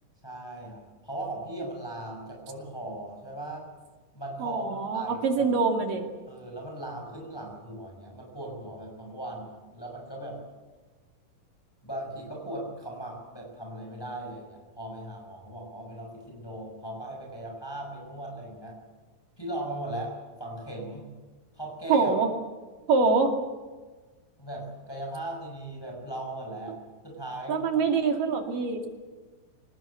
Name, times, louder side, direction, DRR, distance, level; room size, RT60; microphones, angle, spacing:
voice 1, 0.2-3.7 4.1-5.5 6.3-10.4 11.8-18.8 19.4-20.1 20.4-21.1 21.5-22.1 24.4-26.8 27.0-27.6 27.9-28.0, right 1 dB, 5° left, 0 dB, 5.7 m, -38 dB
voice 2, 4.4-6.1 21.9-22.3 22.9-23.3 27.5-28.8, right 4 dB, 75° right, 3 dB, 4.2 m, -24 dB
26.5 x 18.5 x 8.4 m, 1.3 s
omnidirectional pair, 3.9 m